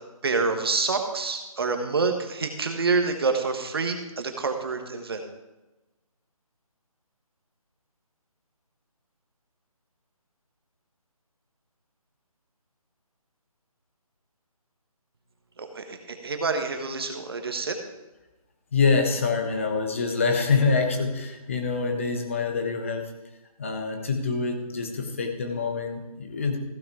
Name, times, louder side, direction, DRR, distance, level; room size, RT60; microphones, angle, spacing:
voice 1, 0.2-5.2 15.6-17.8, right 4 dB, 40° right, 5 dB, 1.3 m, -27 dB
voice 2, 18.7-23.1 23.6-26.6, left 4 dB, 20° left, 5 dB, 0.9 m, -25 dB
15.0 x 6.2 x 4.7 m, 1.1 s
figure-of-eight pair, 170°, 19 cm